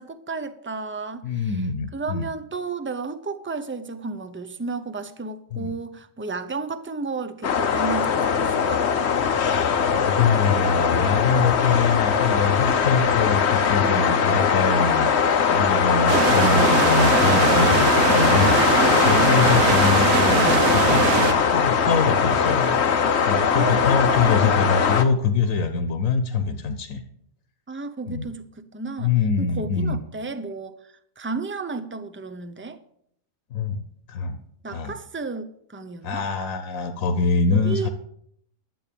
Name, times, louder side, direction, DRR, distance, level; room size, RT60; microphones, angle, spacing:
voice 1, 0.0-1.5 1.9-8.9 19.0-19.4 23.5-24.5 27.7-29.1 29.4-32.8 34.6-36.2 37.5-37.9, right 4 dB, 15° right, 9 dB, 0.4 m, -33 dB
voice 2, 1.2-2.2 5.5-5.7 9.9-15.1 15.5-22.8 23.3-27.0 28.1-28.3 29.0-30.0 33.5-33.8 34.1-34.4 34.7-34.9 36.0-37.9, left 5 dB, 90° left, 8 dB, 1.3 m, -24 dB
sound 1, 7.4-25.0, left 6 dB, 55° left, 1.1 m, -20 dB
sound 2, 16.1-21.3, right 7 dB, 90° right, 1.3 m, -21 dB
12.0 x 7.8 x 6.9 m, 0.71 s
omnidirectional pair, 1.4 m